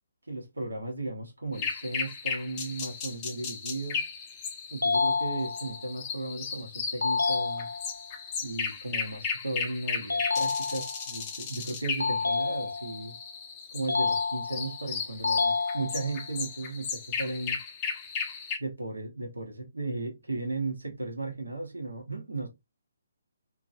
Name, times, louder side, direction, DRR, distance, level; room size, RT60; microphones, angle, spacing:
voice 1, 0.3-4.1 4.7-7.7 8.4-13.2 13.7-17.6 18.6-22.5, right 2 dB, 75° right, 1.2 m, -35 dB
sound 1, 1.5-18.6, left 5 dB, 25° left, 0.6 m, -36 dB
sound 2, 4.8-5.8 7.0-8.0 10.1-11.1 12.0-13.1 13.9-14.8 15.2-16.2, left 4 dB, 75° left, 0.4 m, -29 dB
2.9 x 2.8 x 2.6 m
figure-of-eight pair, 140°, 0 cm